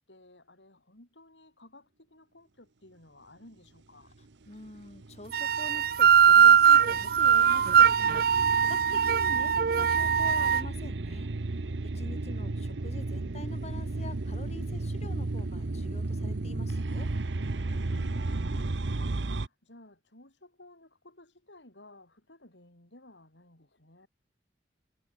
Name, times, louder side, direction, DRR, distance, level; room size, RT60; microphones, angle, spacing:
voice 1, 0.1-4.2 11.9-12.3 17.7-24.1, left 1 dB, 85° left, 6.7 m, -55 dB
voice 2, 4.5-11.3 11.8-17.1, left 2 dB, 35° left, 2.4 m, -46 dB
sound 1, 4.7-19.5, right 2 dB, 85° right, 0.9 m, -34 dB
sound 2, 5.3-10.6, right 7 dB, 55° right, 0.4 m, -21 dB
head